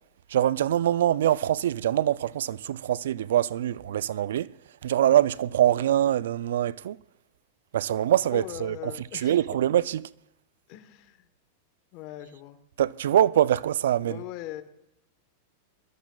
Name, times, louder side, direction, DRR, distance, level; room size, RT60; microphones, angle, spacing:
voice 1, 0.3-4.5 4.8-7.0 7.7-10.0 12.8-14.2, right 11 dB, 80° right, 0.3 m, -24 dB
voice 2, 8.3-9.4 10.7-11.3 11.9-12.6 14.0-14.6, left 14 dB, 50° left, 1.1 m, -40 dB
22.5 x 14.0 x 2.3 m
hypercardioid pair, 125°, 0 cm